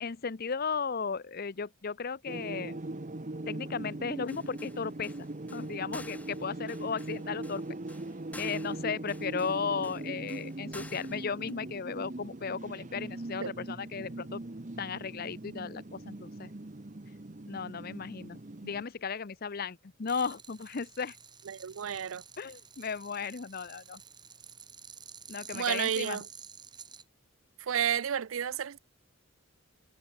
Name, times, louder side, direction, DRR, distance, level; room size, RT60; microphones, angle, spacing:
voice 1, 0.0-2.8 3.5-5.1 5.5-7.6 8.4-14.4 14.8-16.5 17.5-21.2 22.4-24.0 25.3-26.2, left 5 dB, 45° left, 0.6 m, -35 dB
sound 1, 2.3-18.8, right 2 dB, 35° right, 0.9 m, -40 dB
sound 2, 4.3-11.5, left 2 dB, 5° left, 3.9 m, -51 dB
sound 3, 20.0-27.0, right 7 dB, 20° right, 2.2 m, -50 dB
voice 2, 21.5-22.2 25.5-26.2 27.6-28.8, right 8 dB, 70° right, 0.5 m, -31 dB
head